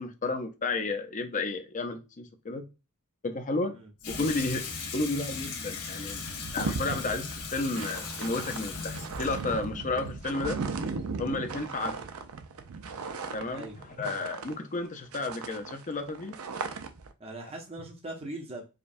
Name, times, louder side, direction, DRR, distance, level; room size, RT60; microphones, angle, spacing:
voice 1, 0.0-2.6 3.2-3.7 4.1-4.7 4.9-6.2 6.5-10.6 11.2-12.0 13.3-13.7 14.0-16.4, left 3 dB, 35° left, 0.6 m, -32 dB
Water tap faucet / Sink (filling or washing), 4.0-11.0, left 4 dB, 80° left, 1.0 m, -39 dB
sound 1, 5.6-5.7 5.9-14.9 15.1-17.1, right 4 dB, 65° right, 0.5 m, -37 dB
voice 2, 17.2-18.6, right 2 dB, 25° right, 0.6 m, -40 dB
5.0 x 2.3 x 2.6 m
head